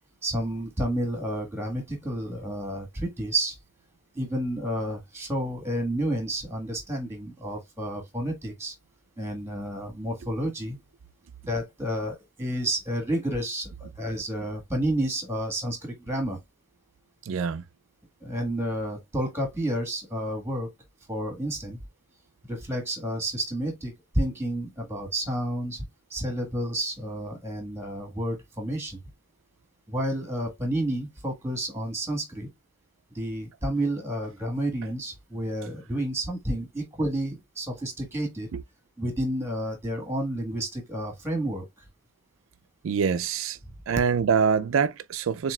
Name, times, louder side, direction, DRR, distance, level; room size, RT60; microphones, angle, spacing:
voice 1, 0.2-3.6 4.1-8.7 9.2-10.8 11.4-16.4 18.2-20.7 21.1-21.8 22.5-25.8 26.1-29.0 29.9-32.5 33.1-38.5 39.0-41.6, right 1 dB, 10° right, 1.3 m, -30 dB
voice 2, 17.2-17.6 38.5-38.6 42.8-43.6 43.9-45.5, right 6 dB, 70° right, 0.4 m, -25 dB
7.2 x 2.8 x 2.2 m
head